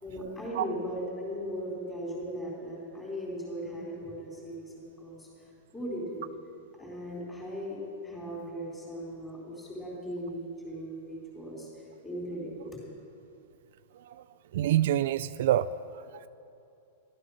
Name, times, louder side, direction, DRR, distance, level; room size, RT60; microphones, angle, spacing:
voice 1, 0.0-6.3 6.8-12.8, equal, 10° left, -4 dB, 3.7 m, -38 dB
voice 2, 14.5-15.7, right 13 dB, 55° right, 13 dB, 0.3 m, -25 dB
13.5 x 12.5 x 6.4 m, 2.8 s
supercardioid pair, 170°, 0 cm